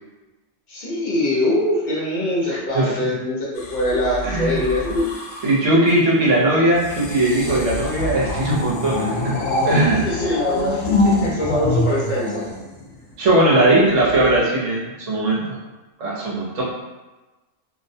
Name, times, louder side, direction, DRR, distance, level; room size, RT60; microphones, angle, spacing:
voice 1, 0.7-5.1 10.0-12.4, left 1 dB, 45° left, -6 dB, 0.7 m, -23 dB
voice 2, 2.5-3.0 4.2-4.6 5.4-9.4 9.6-10.0 13.2-15.6 16.0-16.6, right 1 dB, 70° right, -5 dB, 1.1 m, -19 dB
sound 1, 3.6-5.7 6.7-13.2 14.1-14.4, left 1 dB, 85° left, 1.0 m, -25 dB
2.6 x 2.1 x 2.6 m, 1.1 s
omnidirectional pair, 1.4 m